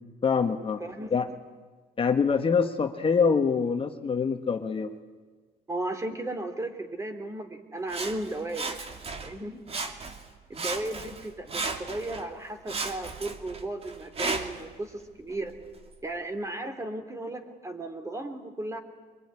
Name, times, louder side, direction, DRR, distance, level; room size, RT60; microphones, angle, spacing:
voice 1, 0.2-0.8 1.1-1.3 2.0-4.9, left 5 dB, 35° left, 5 dB, 1.5 m, -25 dB
voice 2, 5.7-8.8 9.2-9.6 10.5-15.5 16.0-18.8, right 2 dB, 20° right, 7 dB, 3.2 m, -35 dB
Sawing, 7.9-9.4 9.7-10.3 10.5-12.3 12.7-14.7 15.3-15.4, right 3 dB, 35° right, 2.5 m, -35 dB
23.5 x 23.0 x 9.9 m, 1.4 s
cardioid pair, 110°, 17 cm